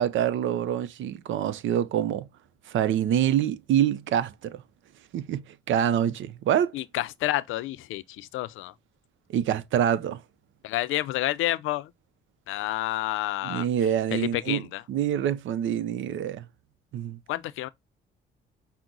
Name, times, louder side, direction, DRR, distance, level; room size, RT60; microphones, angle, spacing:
voice 1, 0.0-2.3 2.7-4.6 5.1-6.7 9.3-10.2 13.4-14.6 14.9-16.4 16.9-17.2, right 10 dB, 75° right, 0.6 m, -26 dB
voice 2, 6.7-8.7 10.6-11.9 12.5-13.7 14.1-14.8 17.3-17.7, left 15 dB, 85° left, 0.5 m, -29 dB
5.9 x 2.1 x 3.8 m
cardioid pair, 90°, 20 cm